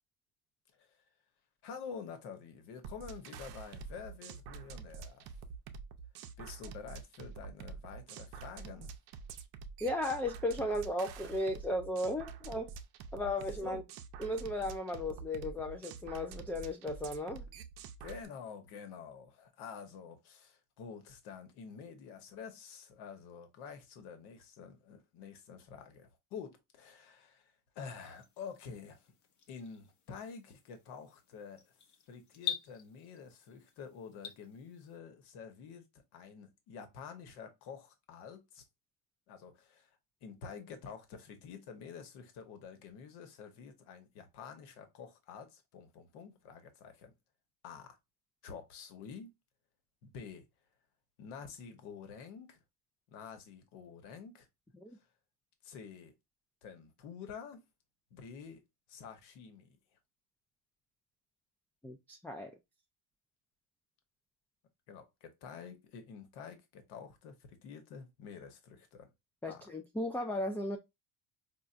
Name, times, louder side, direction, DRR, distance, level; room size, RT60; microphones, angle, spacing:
voice 1, 1.6-5.3 6.4-8.9 13.6-13.8 18.0-29.1 29.5-31.6 32.1-35.9 36.1-38.6 39.3-39.9 40.2-47.1 47.6-48.0 48.4-49.4 50.0-50.5 51.2-52.6 53.1-54.5 55.6-56.1 56.6-57.6 58.1-58.6 58.9-59.8 64.9-69.1 69.4-69.7, left 6 dB, 65° left, 1.1 m, -48 dB
sound 1, 2.8-18.3, right 6 dB, 60° right, 0.6 m, -47 dB
voice 2, 9.8-12.7 13.1-13.8 14.2-17.4 54.8-55.0 61.8-62.6 69.4-70.8, left 1 dB, 5° left, 0.3 m, -35 dB
sound 2, 27.9-35.0, left 8 dB, 40° left, 0.8 m, -46 dB
4.3 x 2.4 x 2.4 m
supercardioid pair, 90°, 43 cm